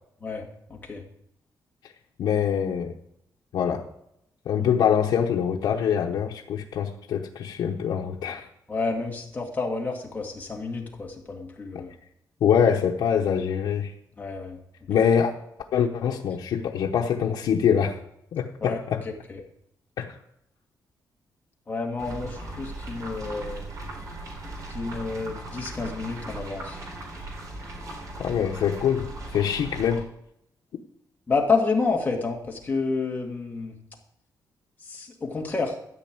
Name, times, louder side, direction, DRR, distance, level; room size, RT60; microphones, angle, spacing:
voice 1, 2.2-2.9 3.5-3.8 4.5-8.4 12.4-13.9 14.9-15.3 15.7-18.0 18.3-19.0 20.0-20.1 28.2-29.1 29.3-30.0, left 8 dB, 85° left, -1 dB, 1.0 m, -24 dB
voice 2, 8.7-12.0 14.2-14.6 18.6-18.8 19.0-19.4 21.7-23.7 24.7-26.8 31.3-33.8 34.9-35.8, left 4 dB, 25° left, 0 dB, 2.1 m, -29 dB
sound 1, 22.0-30.0, right 2 dB, 50° right, 3.7 m, -38 dB
13.0 x 5.4 x 8.7 m, 0.78 s
wide cardioid pair, 175°, 7 cm